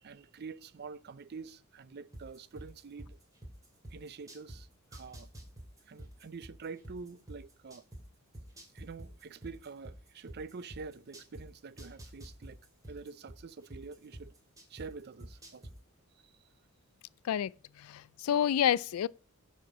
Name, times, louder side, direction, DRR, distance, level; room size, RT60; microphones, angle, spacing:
voice 1, 0.0-3.2 3.9-5.3 5.9-7.8 8.7-12.6 12.9-14.3 14.7-15.7 16.2-16.3, right 4 dB, 50° right, 0.5 m, -46 dB
sound 1, 2.1-4.6 4.9-8.0 8.3-11.4 11.8-14.9 15.2-15.7, right 1 dB, 15° right, 2.4 m, -47 dB
voice 2, 17.8-19.1, left 9 dB, 85° left, 0.3 m, -28 dB
10.0 x 4.3 x 6.0 m
head